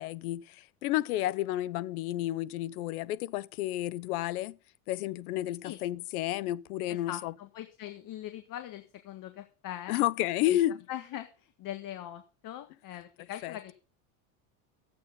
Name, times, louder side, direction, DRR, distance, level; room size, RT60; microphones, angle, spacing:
voice 1, 0.0-4.6 4.9-7.3 9.9-10.8 13.4-13.6, left 14 dB, 85° left, 0.8 m, -31 dB
voice 2, 6.9-10.0 10.5-10.6 10.9-13.7, left 12 dB, 50° left, 1.5 m, -41 dB
13.5 x 8.8 x 5.3 m
supercardioid pair, 105°, 43 cm